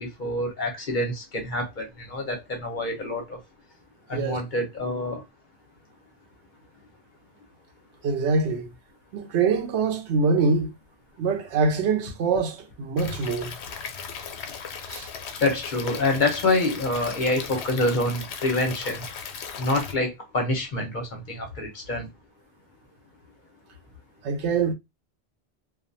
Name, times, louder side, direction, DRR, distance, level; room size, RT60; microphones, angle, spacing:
voice 1, 0.0-3.4 4.1-5.2 15.4-19.1 19.6-22.1, left 2 dB, 50° left, 0.8 m, -26 dB
voice 2, 8.0-8.7 9.1-10.7 11.2-13.5 14.9-15.1 24.2-24.7, right 4 dB, 85° right, 0.9 m, -24 dB
Stream / Liquid, 13.0-19.9, left 6 dB, 80° left, 0.8 m, -37 dB
2.3 x 2.2 x 2.5 m
omnidirectional pair, 1.1 m